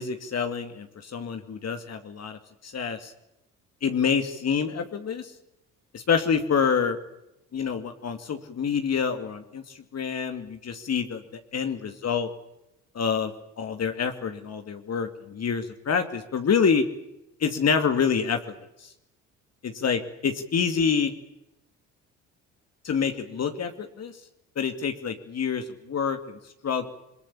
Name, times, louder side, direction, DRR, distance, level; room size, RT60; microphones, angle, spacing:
voice 1, 0.0-3.1 3.8-5.3 5.9-7.0 7.5-11.2 11.5-12.3 12.9-16.8 17.4-18.4 18.8-18.9 19.6-21.1 22.8-24.1 24.6-26.4 26.6-26.9, left 6 dB, 45° left, 6 dB, 2.5 m, -27 dB
22.5 x 21.5 x 8.6 m, 0.86 s
hypercardioid pair, 60°, 35 cm